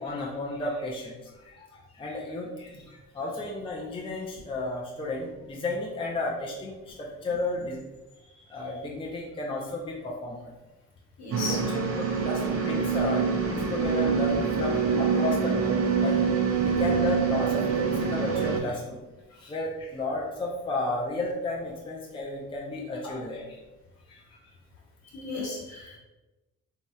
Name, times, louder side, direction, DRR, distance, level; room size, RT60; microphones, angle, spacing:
voice 1, 0.0-7.8 8.5-10.5 11.5-16.2 16.6-19.0 19.3-23.6 24.1-24.4, left 2 dB, 20° left, -2 dB, 0.4 m, -33 dB
voice 2, 11.2-11.6 25.1-26.0, left 3 dB, 60° left, -3 dB, 1.1 m, -35 dB
sound 1, 11.3-18.6, right 6 dB, 50° right, 0.5 m, -25 dB
3.0 x 2.7 x 2.2 m, 1.1 s
cardioid pair, 90°, 30 cm